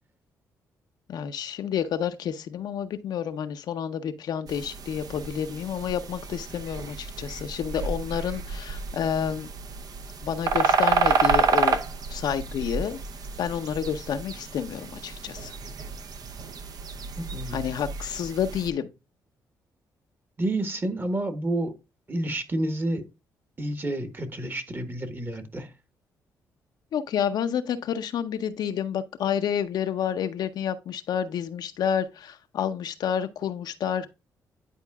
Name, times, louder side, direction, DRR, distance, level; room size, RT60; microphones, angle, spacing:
voice 1, 1.1-9.5 10.2-11.8 12.1-13.0 13.4-15.6 17.5-18.9 26.9-34.1, left 8 dB, 75° left, 0.6 m, -29 dB
sound 1, 4.5-18.7, right 5 dB, 60° right, 0.7 m, -30 dB
voice 2, 17.3-17.7 20.4-21.7 22.1-23.1 23.6-25.7, right 1 dB, 30° right, 1.2 m, -29 dB
10.0 x 4.4 x 2.3 m
cardioid pair, 70°, 7 cm